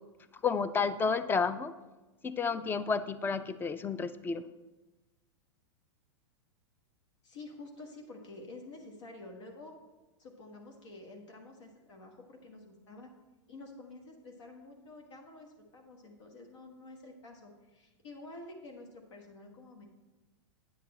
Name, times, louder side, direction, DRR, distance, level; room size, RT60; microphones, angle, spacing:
voice 1, 0.4-1.7 2.2-4.4, left 5 dB, 15° left, 14 dB, 0.4 m, -31 dB
voice 2, 7.2-9.7 10.2-13.1 13.5-19.9, left 2 dB, 75° left, 1 dB, 1.5 m, -49 dB
9.3 x 6.7 x 4.2 m, 1.1 s
hypercardioid pair, 115°, 16 cm